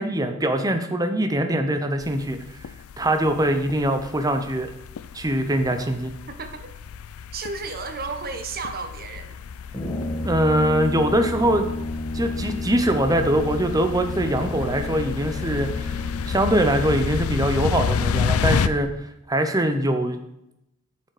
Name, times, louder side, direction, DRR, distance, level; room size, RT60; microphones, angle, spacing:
voice 1, 0.0-2.4 3.0-4.7 5.1-6.1 10.2-11.7 12.1-15.9 16.3-18.9 19.3-20.2, right 1 dB, 15° right, 7 dB, 0.8 m, -22 dB
sound 1, 2.0-18.7, left 6 dB, 75° left, 0.4 m, -30 dB
voice 2, 6.3-6.7 7.3-9.3, right 4 dB, 45° right, 8 dB, 1.0 m, -33 dB
Brass instrument, 9.7-17.2, left 1 dB, 20° left, 1.5 m, -32 dB
7.8 x 7.0 x 4.9 m, 0.83 s
head